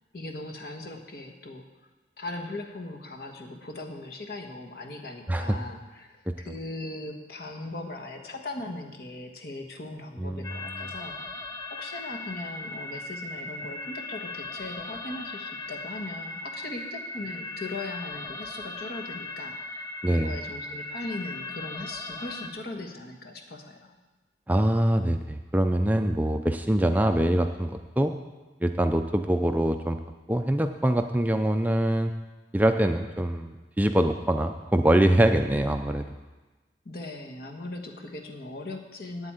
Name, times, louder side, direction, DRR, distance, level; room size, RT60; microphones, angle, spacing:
voice 1, 0.1-1.6 2.2-6.1 6.4-11.4 11.7-24.0 36.8-39.3, left 2 dB, 60° left, 3 dB, 1.4 m, -39 dB
voice 2, 10.2-10.9 20.0-20.4 24.5-28.1 28.6-30.0 30.3-32.1 32.5-36.1, right 1 dB, 10° right, 6 dB, 0.4 m, -24 dB
sound 1, 10.4-22.5, left 2 dB, 20° left, 0.8 m, -38 dB
8.6 x 7.9 x 8.8 m, 1.2 s
head